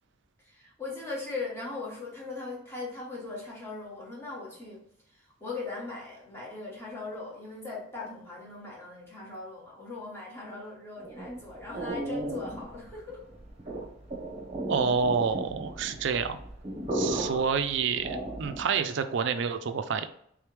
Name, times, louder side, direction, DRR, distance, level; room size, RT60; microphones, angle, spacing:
voice 1, 0.4-4.8 5.4-13.2 17.2-17.4, left 3 dB, 15° left, -5 dB, 1.4 m, -39 dB
sound 1, 11.0-18.8, right 1 dB, 30° right, 0.9 m, -36 dB
voice 2, 14.7-16.4 16.9-20.1, right 6 dB, 65° right, 9 dB, 0.4 m, -28 dB
3.4 x 3.4 x 3.2 m, 0.68 s
head